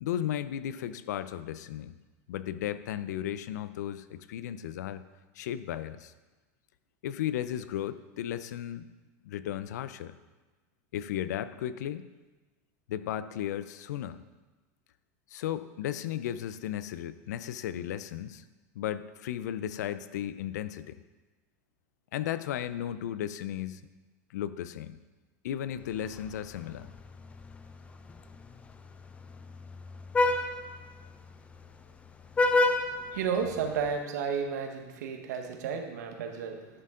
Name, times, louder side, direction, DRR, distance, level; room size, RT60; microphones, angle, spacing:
voice 1, 0.0-1.9 2.3-5.0 5.3-6.1 7.0-8.9 9.2-10.1 10.9-12.1 12.9-14.2 15.3-18.4 18.8-21.0 22.1-23.8 24.3-25.0 25.4-26.9, left 11 dB, 80° left, 14 dB, 0.5 m, -35 dB
Vehicle horn car horn honking, 25.8-34.0, left 2 dB, 15° left, 0.5 m, -32 dB
voice 2, 33.1-36.7, right 6 dB, 80° right, 5 dB, 1.2 m, -32 dB
11.0 x 6.7 x 3.7 m, 1.2 s
supercardioid pair, 130°, 9 cm